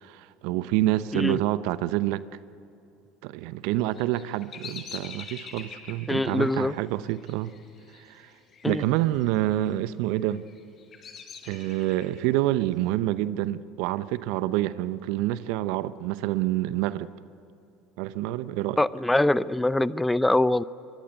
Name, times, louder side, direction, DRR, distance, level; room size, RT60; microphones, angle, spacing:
voice 1, 0.0-2.2 3.2-7.5 8.0-8.3 8.6-10.4 11.4-17.1 18.0-18.8, right 15 dB, 65° right, 16 dB, 0.8 m, -27 dB
Bird vocalization bird call bird song, 3.7-8.8 9.0-9.6 10.2-12.2, left 6 dB, 40° left, 6.2 m, -44 dB
voice 2, 6.1-6.7 8.6-8.8 18.8-20.6, left 1 dB, 10° left, 18 dB, 0.6 m, -23 dB
25.0 x 23.0 x 8.2 m, 2.7 s
hypercardioid pair, 70°, 0 cm